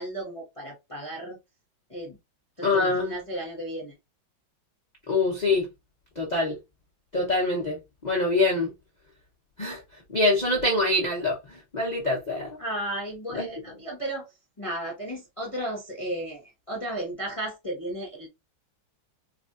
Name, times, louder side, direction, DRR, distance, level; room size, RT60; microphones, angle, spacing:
voice 1, 0.0-1.4 1.9-2.2 2.6-3.9 12.6-14.3 14.6-18.3, right 1 dB, 25° left, 0.8 m, -34 dB
voice 2, 2.6-3.2 5.1-5.7 6.2-6.6 7.1-7.8 8.0-8.7 9.6-9.8 10.1-12.6 13.3-13.5, left 2 dB, 70° left, 0.4 m, -24 dB
4.7 x 2.5 x 2.4 m
omnidirectional pair, 2.2 m